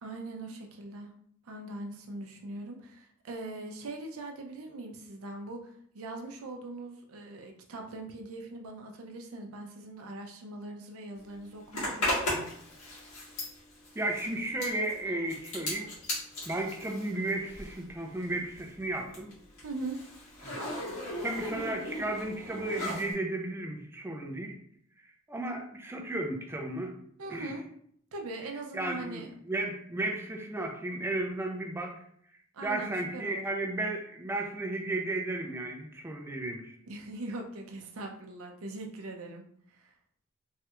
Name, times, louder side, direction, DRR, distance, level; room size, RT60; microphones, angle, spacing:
voice 1, 0.0-1.1 1.5-12.5 19.6-20.0 27.2-27.6 28.1-29.3 32.5-33.4 36.9-39.4 39.8-39.9, right 2 dB, 80° right, 2 dB, 0.5 m, -41 dB
Zipper (clothing), 11.7-17.9 18.2-23.1, left 1 dB, 75° left, 1.5 m, -37 dB
voice 2, 14.0-15.9 16.5-19.3 20.4-20.6 21.2-24.5 25.3-26.9 27.3-27.5 28.7-32.0 32.6-36.8, right 2 dB, 10° right, 2 dB, 0.4 m, -34 dB
3.2 x 2.3 x 2.9 m, 0.65 s
head